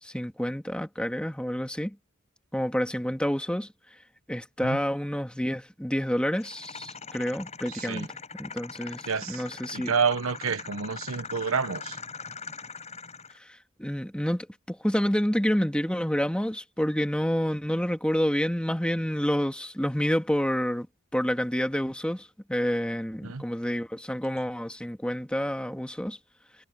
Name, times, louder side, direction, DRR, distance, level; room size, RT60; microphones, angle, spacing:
voice 1, 0.0-2.0 2.5-3.7 4.3-8.1 8.4-9.9 13.4-20.9 21.1-26.2, equal, 5° left, 1.9 m, -28 dB
sound 1, 6.4-13.4, left 5 dB, 35° left, 6.3 m, -41 dB
voice 2, 7.7-8.1 9.1-9.4 9.7-12.0 23.2-23.4, right 5 dB, 80° right, 1.1 m, -29 dB
head